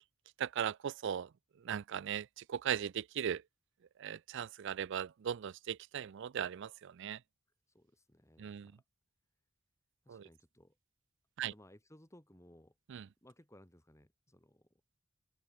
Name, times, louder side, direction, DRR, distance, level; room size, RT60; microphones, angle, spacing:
voice 1, 0.4-1.3 1.6-3.4 4.0-7.2 8.4-8.7 10.1-10.2 11.4-11.5 12.9-13.0, right 8 dB, 60° right, 0.4 m, -38 dB
voice 2, 7.7-8.8 10.1-10.8 11.4-12.7 13.2-14.7, left 1 dB, 15° left, 3.9 m, -61 dB
head